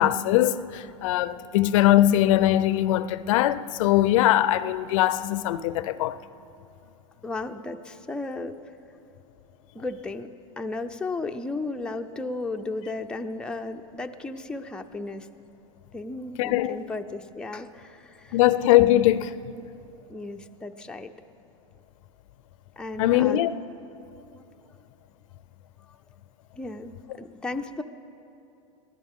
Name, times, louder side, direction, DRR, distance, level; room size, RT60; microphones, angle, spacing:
voice 1, 0.0-6.2 16.4-16.8 18.3-19.3 23.0-23.5, left 14 dB, 70° left, 0.5 m, -21 dB
voice 2, 7.2-8.6 9.7-10.3 10.6-15.3 15.9-18.4 20.1-21.1 22.8-23.4 26.5-27.8, left 3 dB, 5° left, 0.6 m, -34 dB
22.5 x 15.0 x 3.7 m
supercardioid pair, 125°, 17 cm